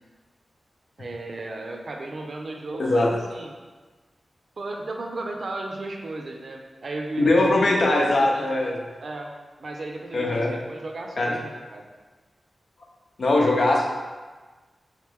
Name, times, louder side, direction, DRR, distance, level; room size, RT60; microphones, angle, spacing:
voice 1, 1.0-3.5 4.6-8.5 9.0-9.3 9.6-11.8, right 2 dB, 60° right, 2 dB, 0.5 m, -35 dB
voice 2, 2.8-3.2 7.2-8.7 10.1-10.5 11.2-11.3 13.2-13.8, left 2 dB, 65° left, -1 dB, 0.7 m, -20 dB
3.9 x 3.2 x 3.4 m, 1.3 s
wide cardioid pair, 75°, 0 cm